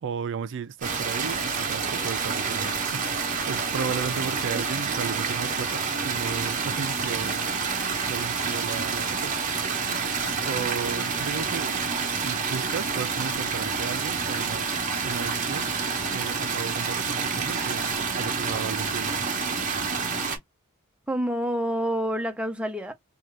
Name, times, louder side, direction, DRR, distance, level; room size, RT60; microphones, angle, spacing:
voice 1, 0.0-9.4 10.4-15.7 16.1-17.8 18.2-19.2, right 6 dB, 60° right, 0.4 m, -34 dB
sound 1, 0.8-20.4, right 5 dB, 35° right, 0.8 m, -28 dB
voice 2, 21.1-22.9, equal, 5° right, 0.6 m, -28 dB
2.7 x 2.3 x 3.2 m
head